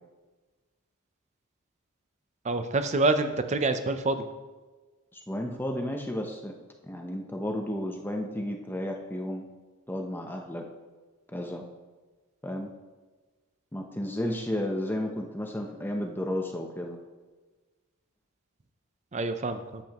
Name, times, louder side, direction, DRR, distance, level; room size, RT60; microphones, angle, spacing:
voice 1, 2.4-4.3 19.1-19.8, right 2 dB, 30° right, 9 dB, 0.5 m, -27 dB
voice 2, 5.1-6.5 6.8-9.5 9.9-10.7 11.3-11.6 12.4-12.7 13.7-17.0, left 1 dB, 10° left, 2 dB, 0.7 m, -33 dB
10.5 x 7.8 x 3.0 m, 1.3 s
head